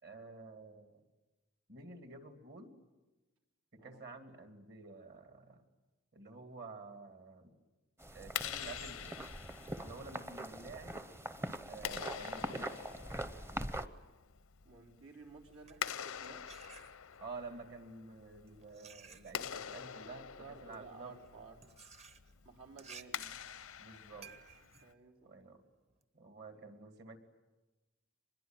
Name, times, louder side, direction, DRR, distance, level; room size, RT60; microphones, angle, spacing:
voice 1, 0.0-1.0 1.7-2.7 3.7-5.6 6.1-7.6 8.1-9.3 9.8-11.0 11.7-12.8 17.2-21.2 23.8-24.3 25.2-25.6 26.1-27.2, right 3 dB, 55° right, 7 dB, 2.6 m, -50 dB
sound 1, 8.0-13.9, right 1 dB, 10° right, 0.8 m, -43 dB
Clapping, 8.2-24.9, left 9 dB, 85° left, 0.7 m, -46 dB
voice 2, 14.6-16.5 19.4-19.5 20.4-21.7 22.4-23.3 24.8-25.4 26.5-26.7, right 4 dB, 80° right, 1 dB, 3.8 m, -55 dB
sound 2, 15.4-17.4 18.1-26.0, right 6 dB, 30° right, 1.1 m, -57 dB
25.0 x 21.0 x 9.1 m, 1.1 s
head